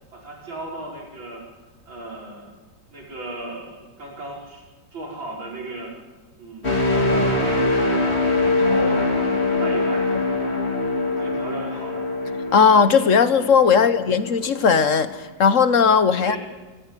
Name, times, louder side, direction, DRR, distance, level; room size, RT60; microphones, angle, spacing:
voice 1, 0.1-1.4 1.9-2.5 2.9-4.6 4.9-5.9 6.4-7.7 8.5-9.1 9.6-10.1 11.2-12.0 13.7-13.9 16.1-16.4, right 2 dB, 80° right, -2 dB, 5.7 m, -35 dB
sound 1, 6.6-14.5 14.9-15.2, left 2 dB, 30° left, 3.4 m, -23 dB
voice 2, 12.5-16.4, left 6 dB, 50° left, 13 dB, 1.1 m, -17 dB
24.0 x 15.0 x 9.1 m, 1.3 s
omnidirectional pair, 2.1 m